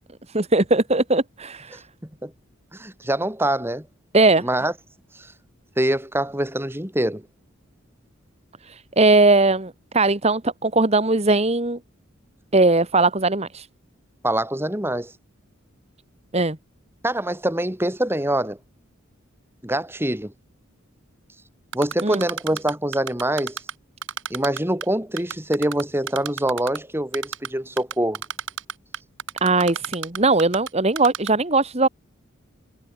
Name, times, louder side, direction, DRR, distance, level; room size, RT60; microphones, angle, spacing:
voice 1, 0.3-1.8 4.1-4.5 8.7-11.8 12.5-13.7 16.3-16.6 22.0-22.2 29.4-31.9, right 2 dB, 30° right, 1.8 m, -19 dB
voice 2, 2.7-3.9 4.4-4.7 5.2-5.3 5.8-7.2 14.2-15.1 17.0-18.6 19.6-20.3 21.7-23.6 24.3-28.2, right 1 dB, 10° right, 3.7 m, -24 dB
Typing, 21.7-23.7 24.0-24.9 25.2-26.8 27.1-27.5 27.8-30.7 31.0-31.3, right 7 dB, 65° right, 8.0 m, -30 dB
head